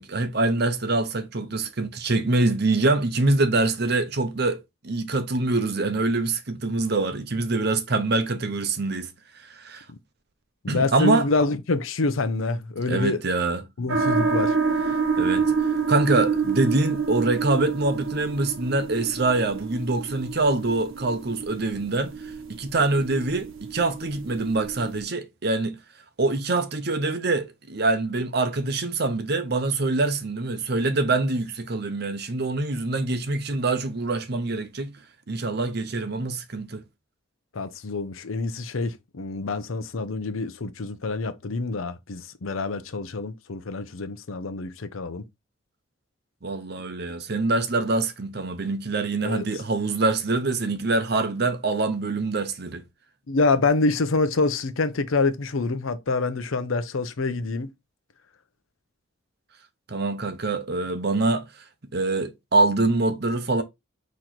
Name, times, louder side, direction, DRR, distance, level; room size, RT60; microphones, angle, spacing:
voice 1, 0.0-9.1 9.3-9.8 10.7-11.3 12.9-13.6 15.2-22.1 22.5-25.8 26.2-34.9 35.3-36.8 46.4-52.8 59.9-61.5 61.9-63.6, right 2 dB, 55° right, 0.8 m, -25 dB
voice 2, 10.6-13.2 13.8-14.6 37.5-45.2 49.2-49.4 53.3-57.7, left 3 dB, 85° left, 0.7 m, -26 dB
sound 1, 13.9-25.0, right 5 dB, 85° right, 0.8 m, -28 dB
4.4 x 3.1 x 3.8 m
head